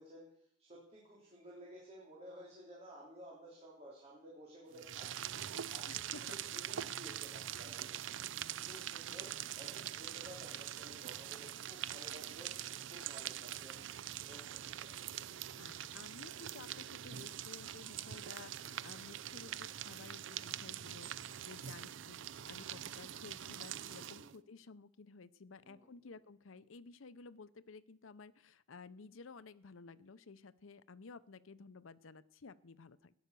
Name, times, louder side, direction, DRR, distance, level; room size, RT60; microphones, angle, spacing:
voice 1, 0.0-12.5 12.8-13.8 14.2-14.9 21.7-21.9 24.2-24.4 25.6-26.2, equal, 30° right, -4 dB, 3.5 m, -55 dB
sound 1, 4.7-24.4, right 11 dB, 70° right, 0.5 m, -44 dB
voice 2, 5.9-6.4 15.6-33.1, left 4 dB, 90° left, 16 dB, 0.7 m, -54 dB
14.5 x 10.5 x 6.8 m, 0.72 s
head